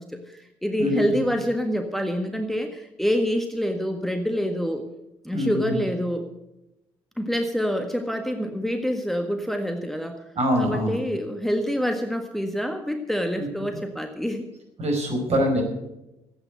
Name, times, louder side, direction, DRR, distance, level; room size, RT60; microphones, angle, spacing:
voice 1, 0.0-4.8 5.2-6.3 7.2-10.2 10.5-14.5, equal, ahead, 5 dB, 1.5 m, -26 dB
voice 2, 0.8-1.2 5.3-5.8 10.4-11.0 13.4-13.5 14.8-15.6, equal, 50° right, 2 dB, 5.2 m, -24 dB
14.5 x 8.9 x 8.1 m, 0.93 s
hypercardioid pair, 50°, 14 cm